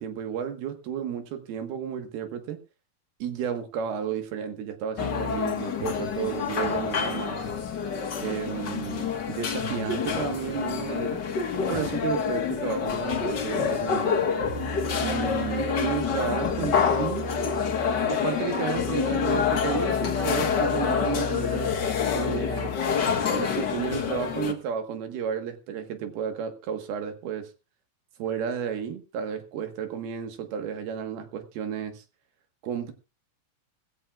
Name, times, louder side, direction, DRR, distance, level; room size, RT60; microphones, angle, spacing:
voice 1, 0.0-2.6 3.2-7.5 8.2-11.2 11.7-14.3 15.0-17.3 18.1-21.7 22.1-22.7 23.3-27.5 28.2-32.0 32.6-32.9, right 8 dB, 85° right, 3.5 m, -32 dB
sound 1, 5.0-24.5, left 6 dB, 60° left, 1.1 m, -27 dB
19.0 x 15.5 x 2.5 m
omnidirectional pair, 4.3 m